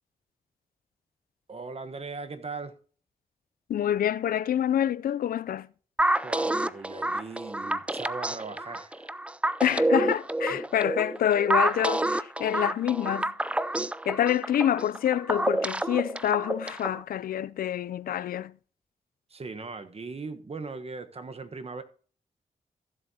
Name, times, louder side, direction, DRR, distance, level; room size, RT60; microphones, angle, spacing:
voice 1, 1.5-2.8 6.2-9.3 10.5-10.6 19.3-21.8, right 4 dB, 45° right, 1.1 m, -39 dB
voice 2, 3.7-5.7 9.6-13.6 14.1-18.5, left 10 dB, 90° left, 0.4 m, -27 dB
sound 1, 6.0-17.0, right 1 dB, 10° right, 0.4 m, -28 dB
15.5 x 7.4 x 2.8 m
cardioid pair, 75°, 15 cm